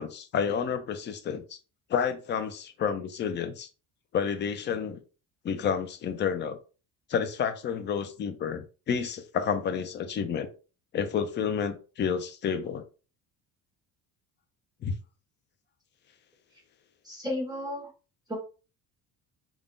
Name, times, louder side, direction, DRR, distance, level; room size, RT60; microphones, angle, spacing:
voice 1, 0.0-1.6 1.9-3.7 4.1-5.0 5.4-6.6 7.1-10.5 10.9-12.9 14.8-15.0, left 7 dB, 30° left, 0.4 m, -30 dB
voice 2, 17.0-17.9 18.3-18.4, left 1 dB, 10° right, 0.9 m, -33 dB
3.4 x 2.3 x 2.5 m
cardioid pair, 140°, 37 cm